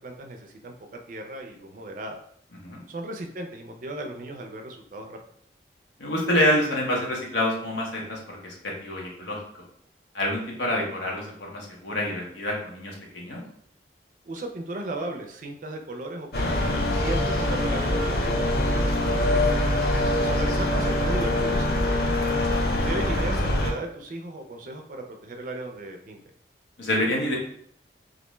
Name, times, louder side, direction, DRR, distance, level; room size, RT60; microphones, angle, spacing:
voice 1, 0.0-2.2 2.9-5.2 14.2-19.5 20.2-21.9 22.7-26.2, right 2 dB, 45° right, 3 dB, 0.4 m, -36 dB
voice 2, 6.0-9.4 10.1-13.4 19.8-20.1 26.8-27.4, left 1 dB, 80° left, -2 dB, 0.8 m, -27 dB
sound 1, 16.3-23.7, left 1 dB, 55° left, 0.4 m, -24 dB
2.4 x 2.2 x 3.0 m, 0.65 s
head